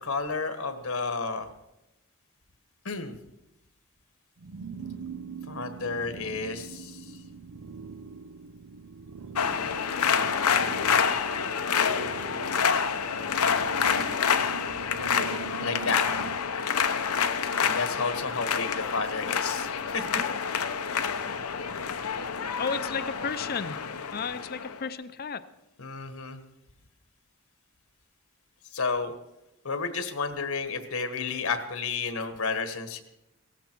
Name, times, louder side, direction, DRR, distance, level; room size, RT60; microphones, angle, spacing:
voice 1, 0.0-1.5 2.8-3.1 5.5-7.2 15.6-16.0 17.6-20.2 25.8-26.4 28.7-29.1 29.6-33.0, left 4 dB, 70° left, 9 dB, 1.4 m, -31 dB
sound 1, 4.4-16.4, right 6 dB, 85° right, 0.7 m, -42 dB
sound 2, 9.4-24.8, left 6 dB, 90° left, 0.9 m, -28 dB
voice 2, 22.6-23.8 24.1-25.4, left 5 dB, 45° left, 13 dB, 0.6 m, -33 dB
17.5 x 14.0 x 4.5 m, 0.92 s
head